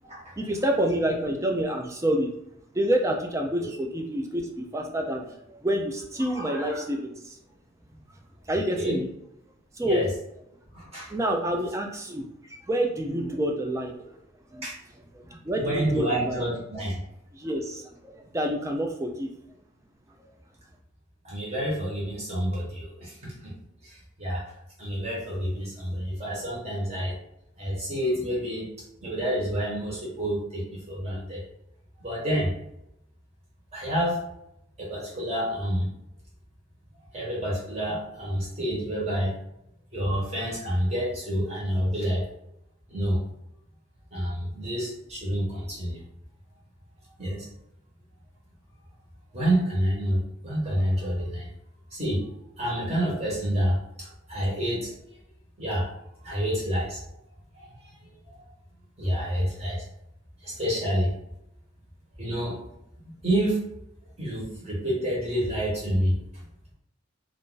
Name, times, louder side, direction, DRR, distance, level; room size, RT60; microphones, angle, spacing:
voice 1, 0.4-2.3 2.7-7.4 8.5-9.1 9.7-10.0 11.1-12.3 12.7-14.2 14.5-14.7 15.2-16.4 17.3-19.3, right 1 dB, 15° right, 2 dB, 0.3 m, -28 dB
voice 2, 6.3-6.8 8.7-9.0 9.8-10.1 10.7-11.1 14.6-14.7 15.5-16.9 21.2-23.5 23.8-24.4 24.8-27.1 27.6-28.7 29.0-31.4 32.0-32.5 33.7-34.2 34.8-35.9 37.1-39.4 39.9-42.2 42.9-43.2 44.1-46.0 47.2-47.4 49.3-51.5 51.9-52.3 52.6-54.9 55.6-55.9 56.2-57.0 57.6-57.7 59.0-59.8 60.4-61.1 62.2-62.6 63.2-63.6 64.2-66.2, equal, 30° right, -5 dB, 1.1 m, -28 dB
2.5 x 2.4 x 3.8 m, 0.80 s
head